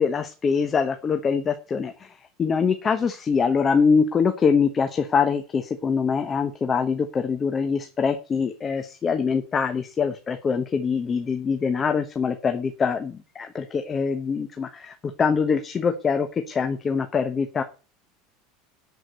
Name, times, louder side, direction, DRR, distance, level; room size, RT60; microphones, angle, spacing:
voice 1, 0.0-2.1 2.4-17.6, left 5 dB, 25° left, 8 dB, 1.0 m, -24 dB
11.0 x 4.9 x 7.9 m, 0.34 s
supercardioid pair, 145°, 0 cm